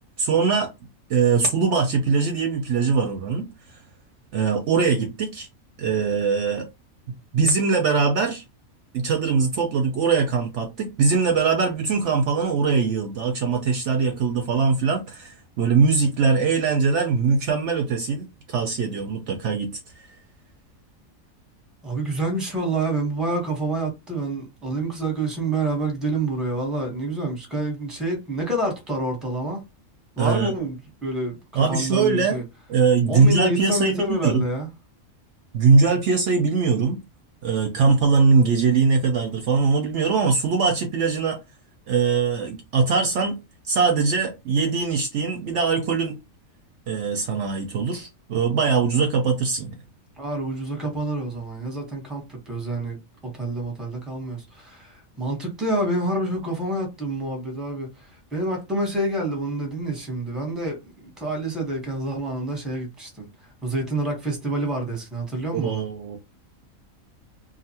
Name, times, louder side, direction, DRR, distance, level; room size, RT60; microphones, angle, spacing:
voice 1, 0.2-0.7 1.1-3.5 4.3-5.5 5.8-6.7 7.3-8.4 8.9-19.8 30.2-30.5 31.5-32.4 32.7-34.4 35.5-37.0 37.4-41.4 41.9-43.4 43.7-46.2 46.9-49.7 65.5-66.2, right 5 dB, 65° right, 0.8 m, -21 dB
voice 2, 21.8-29.6 30.2-32.4 33.1-34.7 50.2-53.0 53.3-63.3 63.6-65.8, right 2 dB, ahead, 0.9 m, -27 dB
2.6 x 2.4 x 2.7 m
omnidirectional pair, 1.4 m